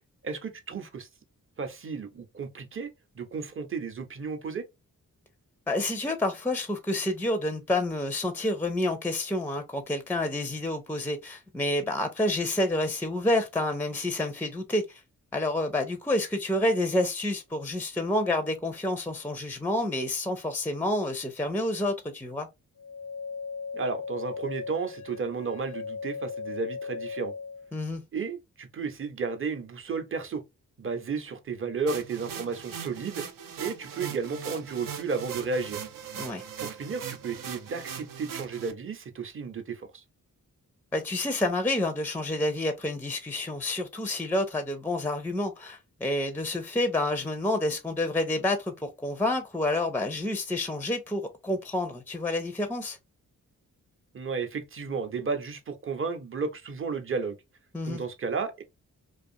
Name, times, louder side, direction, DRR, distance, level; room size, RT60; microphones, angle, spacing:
voice 1, 0.2-1.1 1.6-4.6 23.7-27.3 28.1-30.4 30.8-33.2 33.6-35.8 36.6-40.0 54.1-57.4 57.9-58.6, right 5 dB, 40° right, 0.7 m, -33 dB
voice 2, 5.7-15.0 15.3-22.5 27.7-28.0 36.2-36.4 40.9-53.0 57.7-58.0, left 1 dB, 5° left, 0.5 m, -29 dB
sound 1, 22.8-27.7, left 5 dB, 65° left, 0.5 m, -37 dB
sound 2, 31.9-38.7, right 8 dB, 70° right, 0.6 m, -39 dB
2.4 x 2.4 x 2.6 m
cardioid pair, 55°, 34 cm